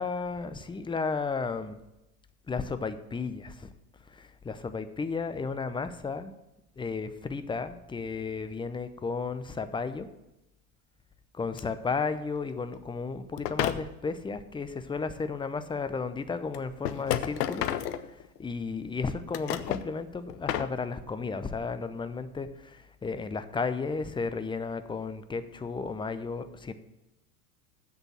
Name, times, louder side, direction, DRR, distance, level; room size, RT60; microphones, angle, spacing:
voice 1, 0.0-1.8 2.5-3.7 4.1-6.3 6.8-10.1 11.3-17.7 18.1-26.7, left 4 dB, 10° left, 11 dB, 0.6 m, -33 dB
sound 1, 11.6-11.7 13.4-13.8 15.6-15.7 16.5-18.5 19.1-19.9 20.3-20.7, left 11 dB, 75° left, 0.8 m, -31 dB
7.9 x 6.5 x 7.3 m, 0.94 s
hypercardioid pair, 80°, 48 cm